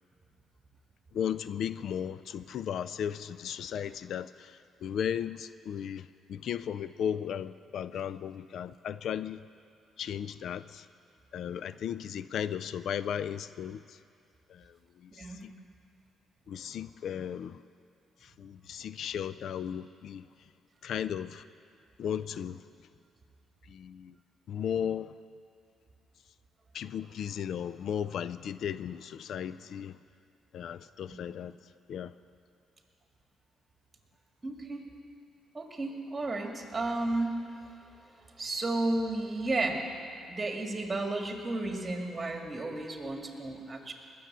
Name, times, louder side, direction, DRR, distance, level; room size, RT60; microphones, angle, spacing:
voice 1, 1.1-9.4 10.0-10.9 11.3-14.0 14.5-15.5 16.5-17.6 18.2-20.3 20.8-21.4 22.0-22.7 23.6-24.2 24.5-25.2 26.7-30.0 30.5-31.6 31.9-32.1, left 8 dB, 70° left, 0.3 m, -36 dB
voice 2, 34.4-34.9 35.5-37.3 38.4-39.8 40.3-43.9, right 2 dB, 25° right, 2.0 m, -33 dB
20.0 x 6.9 x 7.5 m
cardioid pair, 90°, 0 cm